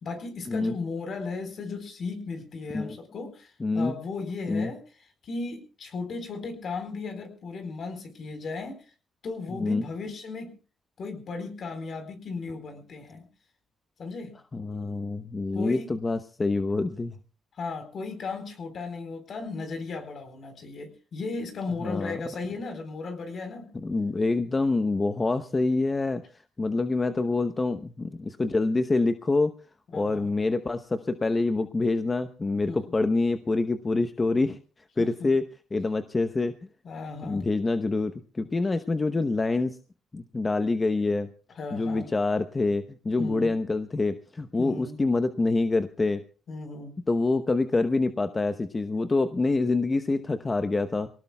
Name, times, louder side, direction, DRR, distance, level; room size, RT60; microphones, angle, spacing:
voice 1, 0.0-4.8 5.2-8.8 9.2-10.5 11.0-13.3 14.0-14.3 15.5-15.9 17.6-23.7 29.9-30.3 32.7-32.8 35.0-35.3 36.8-37.4 41.6-42.1 43.2-43.6 44.6-45.0 46.5-46.9, left 4 dB, 55° left, 8 dB, 4.1 m, -36 dB
voice 2, 3.6-3.9 4.5-4.7 9.6-9.8 14.5-17.2 21.8-22.2 23.7-26.2 26.6-29.5 29.9-34.6 35.0-35.5 35.7-36.5 37.2-39.8 40.1-41.3 41.7-46.2 47.1-51.1, left 3 dB, 25° left, 9 dB, 0.9 m, -26 dB
24.5 x 18.0 x 2.3 m, 0.35 s
cardioid pair, 90°, 0 cm